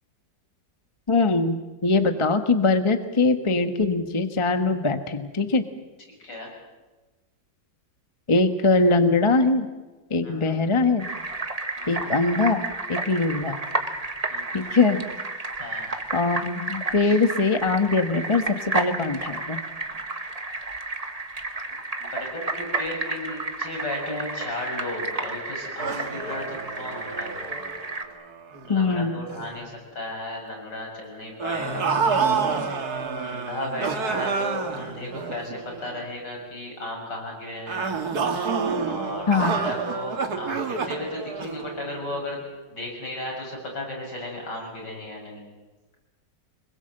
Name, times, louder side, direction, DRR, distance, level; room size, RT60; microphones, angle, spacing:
voice 1, 1.1-5.6 8.3-9.7 10.1-11.0 11.9-12.6 12.9-13.6 14.5-15.0 16.1-18.4 18.7-19.6 28.7-29.2 39.3-39.7, left 3 dB, 20° left, 8 dB, 1.1 m, -22 dB
voice 2, 6.2-6.5 10.2-10.5 11.8-12.1 14.3-14.7 15.6-15.9 17.0-17.2 22.0-27.6 28.6-32.0 33.2-37.9 38.9-42.4 42.7-45.4, left 1 dB, 75° left, 0 dB, 7.7 m, -35 dB
sound 1, 11.0-28.0, right 2 dB, 25° right, 1.4 m, -32 dB
sound 2, 25.8-28.9 29.3-29.6 31.4-36.0 37.7-42.2, right 5 dB, 60° right, 2.1 m, -29 dB
25.0 x 22.0 x 7.8 m, 1.2 s
omnidirectional pair, 1.9 m